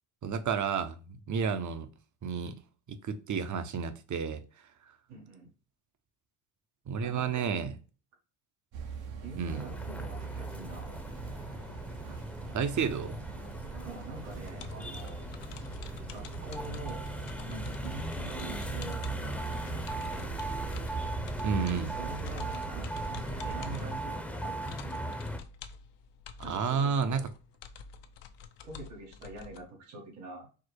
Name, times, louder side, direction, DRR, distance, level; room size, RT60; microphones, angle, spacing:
voice 1, 0.2-1.9 2.2-2.5 2.9-4.4 6.9-7.7 9.4-9.7 12.5-13.2 21.4-22.0 26.4-27.3, right 6 dB, 40° right, 0.8 m, -31 dB
voice 2, 5.1-5.5 7.0-7.8 9.2-10.9 13.8-15.3 16.1-17.1 17.5-20.4 21.8-25.1 26.4-27.3 28.6-30.5, right 3 dB, 90° right, 1.9 m, -45 dB
sound 1, 8.7-23.9, right 6 dB, 70° right, 1.0 m, -41 dB
sound 2, 9.5-25.4, right 1 dB, 5° left, 0.7 m, -39 dB
sound 3, 14.3-29.6, left 6 dB, 65° left, 0.7 m, -49 dB
4.7 x 2.0 x 4.6 m
supercardioid pair, 75°, 47 cm